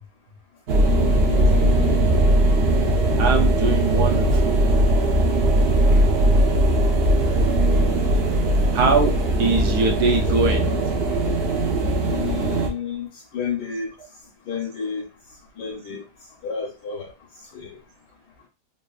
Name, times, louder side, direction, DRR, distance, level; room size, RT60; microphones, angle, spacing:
sound 1, 0.7-12.7, right 1 dB, 60° right, 0.6 m, -19 dB
voice 1, 0.8-2.0 12.1-13.9 14.5-15.1 15.6-16.0 16.4-17.1 17.5-17.8, left 6 dB, 75° left, 1.4 m, -31 dB
voice 2, 3.2-4.6 8.7-9.1 9.4-10.7 12.8-12.9, right 4 dB, 75° right, 1.2 m, -22 dB
3.4 x 2.6 x 2.3 m
omnidirectional pair, 1.7 m